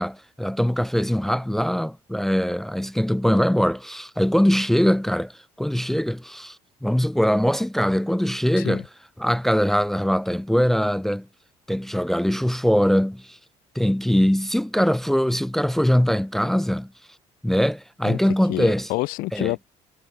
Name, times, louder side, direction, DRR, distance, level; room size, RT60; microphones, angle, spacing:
voice 1, 0.0-5.3 5.6-6.6 6.8-8.9 9.2-11.3 11.7-13.4 13.8-16.9 17.4-18.9 19.3-19.5, equal, ahead, 0.4 m, -22 dB
voice 2, 18.5-19.6, left 22 dB, 90° left, 2.2 m, -28 dB
cardioid pair, 170°, 14 cm